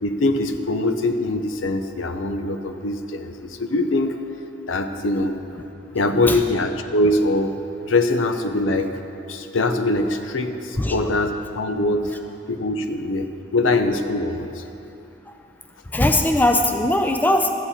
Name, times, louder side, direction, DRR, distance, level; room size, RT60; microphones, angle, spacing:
voice 1, 0.0-4.1 4.7-5.4 5.9-7.5 7.9-8.9 9.3-12.1 12.5-14.6, left 2 dB, 90° left, 7 dB, 0.7 m, -22 dB
voice 2, 15.9-17.5, left 1 dB, 10° left, 4 dB, 0.4 m, -19 dB
13.0 x 8.2 x 4.2 m, 2.8 s
head